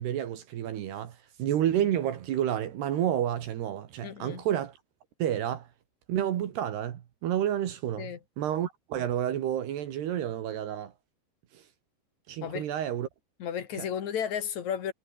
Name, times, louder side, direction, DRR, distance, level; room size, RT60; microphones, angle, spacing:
voice 1, 0.0-4.8 5.2-5.7 6.1-8.1 8.4-10.9 11.5-11.6 12.3-13.1 13.8-13.9, right 11 dB, 70° right, 3.8 m, -30 dB
voice 2, 4.0-4.4 8.0-8.2 12.4-12.7 13.4-14.9, left 8 dB, 55° left, 2.4 m, -33 dB
omnidirectional pair, 5.0 m